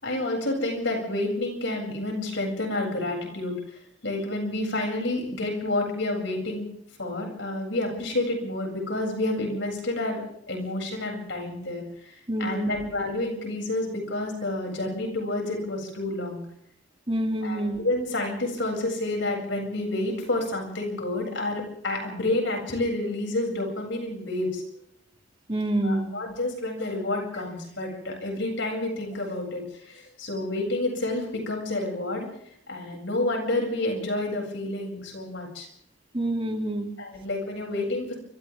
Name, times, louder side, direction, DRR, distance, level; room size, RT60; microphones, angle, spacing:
voice 1, 0.0-3.5 4.0-6.7 7.0-11.8 12.4-16.4 17.4-24.6 25.8-32.3 32.7-35.7 37.0-38.1, left 2 dB, 65° left, 1 dB, 7.8 m, -29 dB
voice 2, 12.3-12.9 17.1-17.8 25.5-26.1 36.1-36.9, right 1 dB, 25° right, 3 dB, 2.9 m, -27 dB
29.0 x 26.0 x 3.8 m, 0.69 s
head